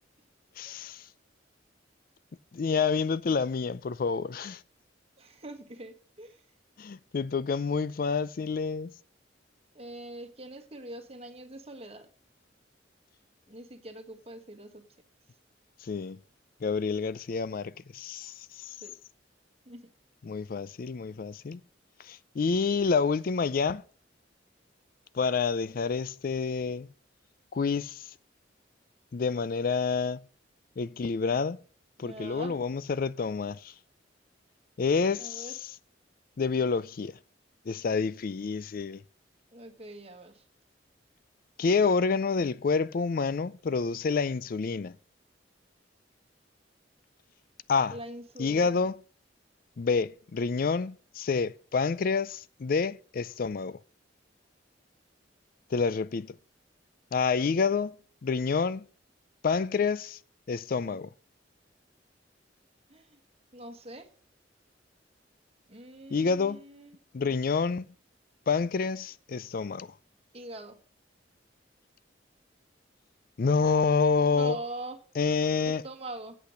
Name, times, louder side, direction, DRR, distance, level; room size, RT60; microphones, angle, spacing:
voice 1, 0.6-1.1 2.5-4.6 6.8-8.9 15.8-16.2 16.6-18.8 20.3-21.6 22.0-23.8 25.1-26.9 27.5-28.1 29.1-30.2 30.8-31.6 32.0-33.7 34.8-35.5 36.4-37.2 37.7-39.0 41.6-45.0 47.7-47.9 48.4-49.0 49.8-53.8 55.7-56.3 57.1-57.9 58.2-58.9 59.4-60.2 60.5-61.1 66.1-66.6 67.1-67.9 68.5-69.9 73.4-74.6 75.2-75.8, left 5 dB, 50° left, 0.4 m, -28 dB
voice 2, 5.2-6.4 9.7-12.1 13.5-14.8 18.7-18.9 19.6-19.9 32.0-32.6 35.2-35.5 39.5-40.4 47.9-48.8 62.9-63.2 63.5-64.1 65.7-67.0 70.3-70.8 74.3-75.0 75.6-76.4, right 1 dB, 35° right, 1.5 m, -43 dB
8.5 x 8.2 x 6.4 m
head